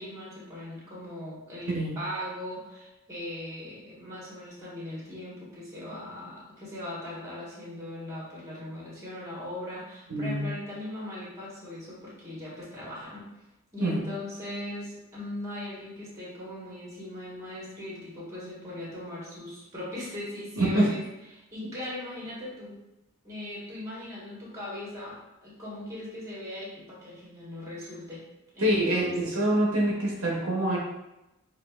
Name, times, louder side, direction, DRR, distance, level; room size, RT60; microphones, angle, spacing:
voice 1, 0.0-13.3 13.7-21.0 21.3-22.7 23.2-28.2 28.5-29.8, left 1 dB, 15° right, -7 dB, 1.4 m, -39 dB
voice 2, 10.1-10.5 13.8-14.0 20.6-20.9 28.6-30.8, right 1 dB, 65° right, -3 dB, 0.9 m, -25 dB
6.2 x 2.5 x 2.4 m, 0.93 s
head